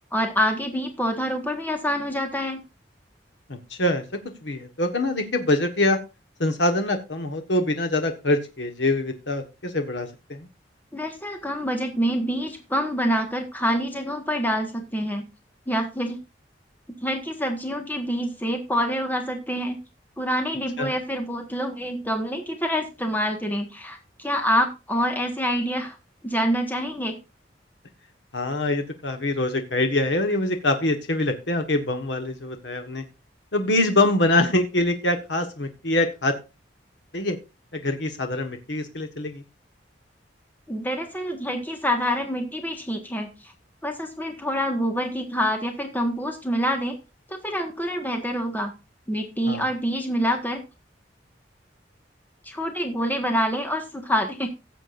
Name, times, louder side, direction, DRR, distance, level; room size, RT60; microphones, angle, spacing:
voice 1, 0.1-2.6 10.9-15.2 15.7-16.2 17.0-19.8 20.2-26.0 26.2-27.2 40.7-43.5 43.8-47.0 47.3-48.7 49.1-50.6 52.4-54.5, equal, 10° left, 4 dB, 1.5 m, -26 dB
voice 2, 3.5-6.0 6.4-10.5 20.8-20.9 28.3-33.0 33.5-36.3 37.1-37.4 37.7-39.4 49.5-49.6, left 2 dB, 75° left, 5 dB, 1.4 m, -24 dB
16.5 x 7.6 x 2.6 m, 0.27 s
head